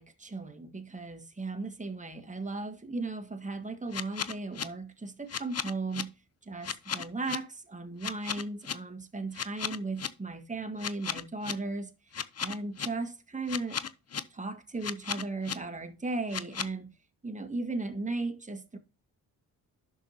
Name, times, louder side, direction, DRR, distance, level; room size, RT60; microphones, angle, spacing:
voice 1, 0.0-6.1 6.4-11.9 12.4-13.8 14.3-16.9 17.2-18.8, right 3 dB, 15° right, 1.7 m, -36 dB
sound 1, 3.9-4.6 5.3-6.0 6.6-7.4 8.0-8.7 9.3-10.1 10.8-11.5 12.1-12.9 13.5-14.2 14.8-15.5 16.3-16.7, left 7 dB, 35° left, 0.9 m, -34 dB
11.0 x 6.5 x 2.8 m
hypercardioid pair, 45°, 43 cm